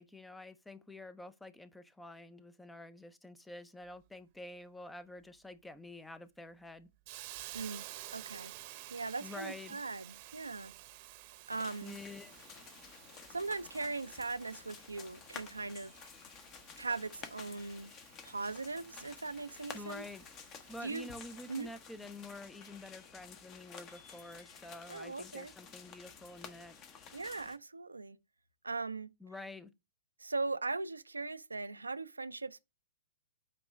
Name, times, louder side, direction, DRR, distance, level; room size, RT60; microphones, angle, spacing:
voice 1, 0.0-6.9 9.2-9.8 11.8-12.3 19.7-20.2 20.7-26.8 29.2-29.7, left 2 dB, 5° left, 0.5 m, -48 dB
Hiss, 7.1-21.8, right 15 dB, 40° right, 0.8 m, -53 dB
voice 2, 7.5-7.9 8.1-8.5 8.9-10.7 11.5-12.0 13.3-15.9 16.8-17.9 18.2-20.0 20.8-21.1 21.5-21.7 24.9-25.5 27.1-28.2 28.6-29.1 30.2-32.6, right 3 dB, 80° right, 0.4 m, -39 dB
sound 1, 11.5-27.6, left 6 dB, 25° left, 0.8 m, -52 dB
8.5 x 3.0 x 5.1 m
figure-of-eight pair, 110°, 0 cm